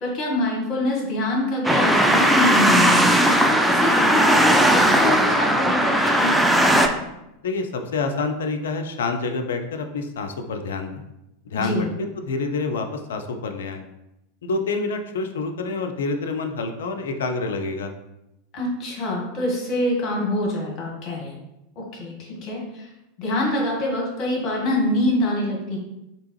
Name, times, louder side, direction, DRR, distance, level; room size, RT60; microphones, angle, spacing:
voice 1, 0.0-3.0 3.5-6.4 11.5-11.9 18.5-21.3 21.8-22.6 23.2-25.8, left 1 dB, 40° left, -2 dB, 1.2 m, -25 dB
sound 1, 1.6-6.9, right 1 dB, 5° right, 0.3 m, -17 dB
voice 2, 7.4-11.0 11.5-13.8 14.4-17.9, left 3 dB, 65° left, 5 dB, 0.4 m, -27 dB
3.5 x 2.7 x 3.0 m, 0.90 s
figure-of-eight pair, 85°, 0 cm